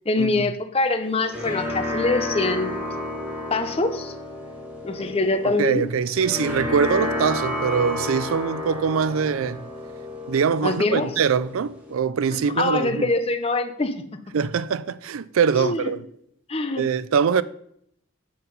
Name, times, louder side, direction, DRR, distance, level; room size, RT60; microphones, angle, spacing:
voice 1, 0.1-2.7 3.5-4.1 4.8-5.8 10.6-11.1 12.5-14.0 15.5-15.9 16.5-16.8, left 2 dB, 25° left, 0.6 m, -24 dB
sound 1, 1.0-12.0, left 1 dB, 5° right, 1.4 m, -31 dB
voice 2, 5.4-9.6 10.3-13.1 14.3-16.0 16.8-17.4, right 6 dB, 75° right, 0.4 m, -23 dB
7.7 x 5.7 x 5.4 m
head